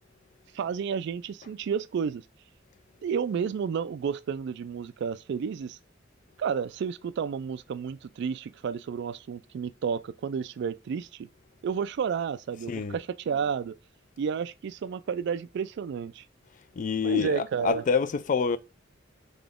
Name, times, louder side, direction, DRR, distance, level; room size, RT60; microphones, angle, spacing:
voice 1, 0.5-2.2 3.0-5.8 6.4-11.3 11.6-13.8 14.2-16.2 17.0-17.8, right 6 dB, 60° right, 0.3 m, -31 dB
voice 2, 16.8-18.6, left 5 dB, 40° left, 0.3 m, -26 dB
3.9 x 3.8 x 3.5 m
head